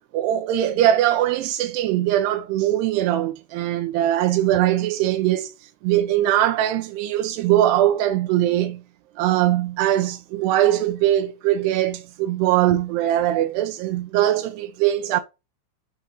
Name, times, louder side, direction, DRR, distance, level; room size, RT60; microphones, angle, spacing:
voice 1, 0.1-5.5 5.8-8.8 9.2-15.2, right 12 dB, 80° right, 2.7 m, -21 dB
7.8 x 5.1 x 2.9 m
omnidirectional pair, 4.9 m